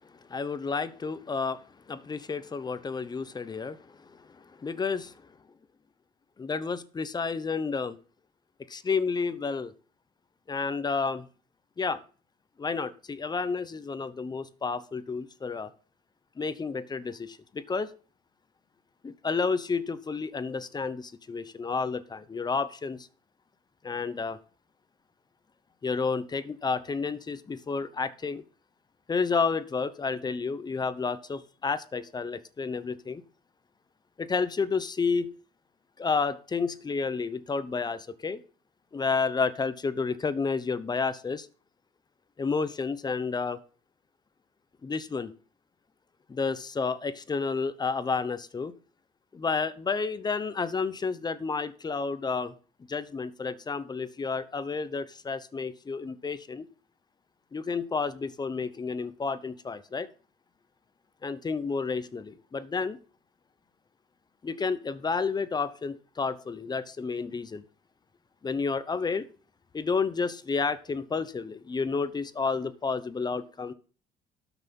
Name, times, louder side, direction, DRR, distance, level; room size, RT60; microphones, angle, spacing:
voice 1, 0.3-5.1 6.4-8.0 8.7-9.7 10.5-11.3 11.8-12.0 12.6-15.7 16.4-17.9 19.0-23.1 23.8-24.4 25.8-28.4 29.1-33.2 34.2-35.4 36.0-38.4 38.9-41.5 42.4-43.6 44.8-45.3 46.3-48.7 49.3-52.5 52.9-56.7 57.5-60.1 61.2-63.0 64.4-67.6 68.4-69.3 69.7-73.7, left 4 dB, 25° left, 0.9 m, -31 dB
12.5 x 6.1 x 5.4 m
cardioid pair, 110°, 17 cm